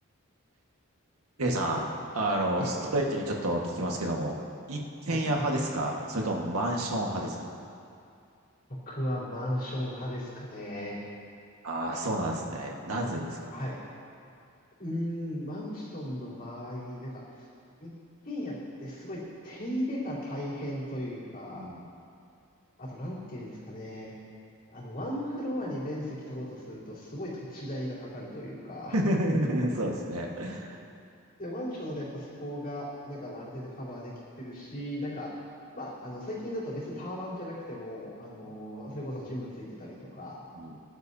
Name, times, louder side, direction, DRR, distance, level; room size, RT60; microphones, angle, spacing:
voice 1, 1.4-1.9 2.1-4.3 4.7-7.4 11.6-13.5 21.6-21.8 28.9-30.8 38.4-38.6 40.5-40.8, right 1 dB, 85° right, -1 dB, 1.6 m, -29 dB
voice 2, 8.9-11.0 13.5-13.8 14.8-17.5 17.8-17.9 18.2-21.7 22.8-24.2 24.7-29.0 31.4-35.3 35.7-40.4, equal, 40° left, -7 dB, 3.8 m, -36 dB
21.5 x 11.5 x 2.8 m, 2.5 s
head